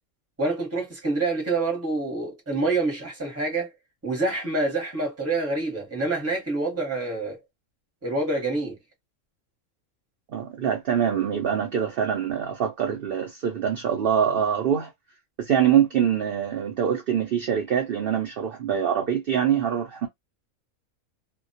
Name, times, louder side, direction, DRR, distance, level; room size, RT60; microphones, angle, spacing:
voice 1, 0.4-3.7 4.0-7.4 8.0-8.8, right 2 dB, 10° right, 0.8 m, -27 dB
voice 2, 10.3-14.9 15.4-20.1, right 8 dB, 65° right, 0.5 m, -24 dB
2.2 x 2.2 x 2.6 m
omnidirectional pair, 1.5 m